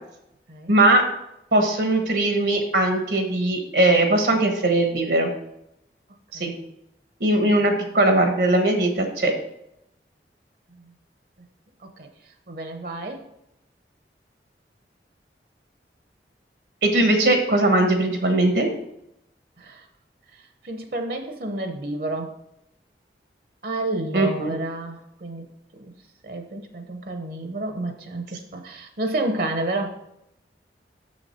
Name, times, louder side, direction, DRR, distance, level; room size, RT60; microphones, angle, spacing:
voice 1, 0.7-1.0 1.5-5.3 6.4-6.5 7.2-9.3 16.8-18.7 24.1-24.5, right 2 dB, 75° right, 4 dB, 1.2 m, -20 dB
voice 2, 12.5-13.2 16.8-16.9 19.6-19.9 20.6-22.3 23.6-25.5 25.8-25.9 26.2-30.0, right 2 dB, 55° right, 5 dB, 0.8 m, -30 dB
7.0 x 6.4 x 4.3 m, 0.82 s
head